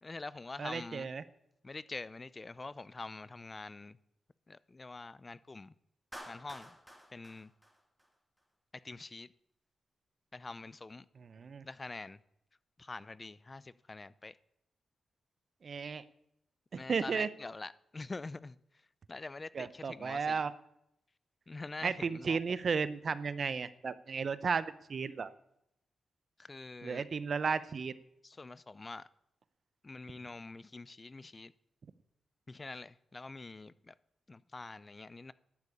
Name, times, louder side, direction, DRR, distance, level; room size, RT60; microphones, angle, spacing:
voice 1, 0.0-1.1 1.6-4.0 4.5-5.7 6.3-6.8 7.1-7.5 8.7-9.3 10.3-11.1 11.6-12.2 12.8-14.4 16.8-18.8 19.1-20.4 21.5-22.4 26.4-27.1 28.2-29.1 29.8-31.5 32.5-33.9 34.3-35.3, left 3 dB, 30° left, 0.5 m, -45 dB
voice 2, 0.6-1.2 11.2-11.7 15.6-16.0 16.7-17.3 19.5-20.5 21.8-25.3 26.8-27.9, right 5 dB, 55° right, 0.7 m, -34 dB
Clapping, 6.1-8.4, equal, 5° right, 2.5 m, -51 dB
12.0 x 8.3 x 8.5 m
cardioid pair, 70°, 0 cm